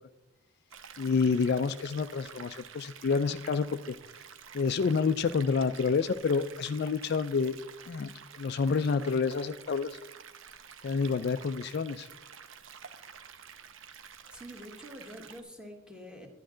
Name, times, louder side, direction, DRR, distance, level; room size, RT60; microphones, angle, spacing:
sound 1, 0.7-15.4, right 7 dB, 65° right, 0.8 m, -49 dB
voice 1, 1.0-4.0 4.5-7.6 7.9-10.0 10.8-12.1, left 5 dB, 50° left, 11 dB, 0.3 m, -28 dB
voice 2, 14.3-16.3, equal, 5° right, 2 dB, 1.5 m, -46 dB
11.5 x 10.5 x 3.8 m, 0.98 s
head